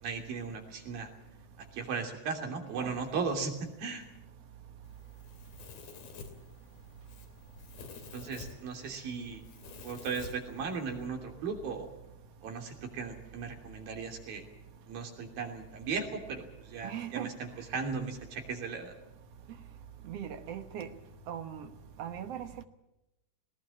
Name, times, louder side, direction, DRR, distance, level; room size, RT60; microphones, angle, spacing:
voice 1, 0.0-1.1 1.7-4.0 8.1-9.4 9.8-11.9 12.4-14.4 14.9-18.9, right 5 dB, 80° right, 4.8 m, -37 dB
Domestic sounds home sounds, 4.8-11.1, left 4 dB, 90° left, 4.6 m, -50 dB
voice 2, 16.8-17.3 20.1-20.9 21.3-21.7 22.0-22.6, right 9 dB, 60° right, 1.7 m, -39 dB
19.0 x 18.5 x 8.6 m
omnidirectional pair, 4.1 m